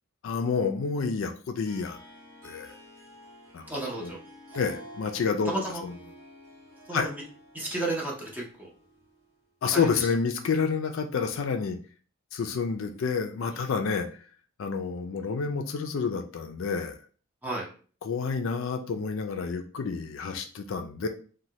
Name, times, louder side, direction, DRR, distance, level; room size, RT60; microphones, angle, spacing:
voice 1, 0.2-2.0 2.4-2.7 3.5-3.7 4.0-4.1 4.5-5.5 5.8-6.0 6.9-7.1 9.6-11.8 12.3-14.1 14.6-17.0 18.0-21.1, left 5 dB, 65° left, 6 dB, 0.4 m, -29 dB
Harp, 1.6-9.3, equal, 85° right, 0.9 m, -49 dB
voice 2, 3.7-4.2 5.5-5.8 6.9-7.1 7.5-8.7 9.7-9.8 17.4-17.7, right 2 dB, 10° right, -2 dB, 0.6 m, -32 dB
3.0 x 2.2 x 2.7 m, 0.40 s
head